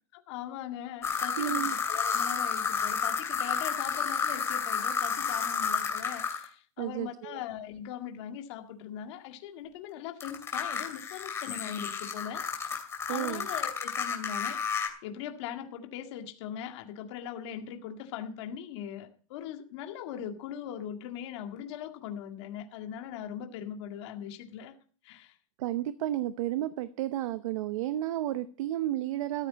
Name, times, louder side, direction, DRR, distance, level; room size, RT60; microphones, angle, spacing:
voice 1, 0.1-12.5 13.1-14.6 15.0-24.7 25.0-25.4, left 9 dB, 55° left, 5 dB, 2.0 m, -40 dB
sound 1, 1.0-6.5 10.2-14.9, left 6 dB, 15° left, 2.7 m, -31 dB
voice 2, 1.4-1.7 6.8-7.4 13.1-13.5 25.6-29.5, right 13 dB, 75° right, 13 dB, 0.9 m, -32 dB
14.0 x 12.5 x 4.1 m, 0.42 s
supercardioid pair, 170°, 17 cm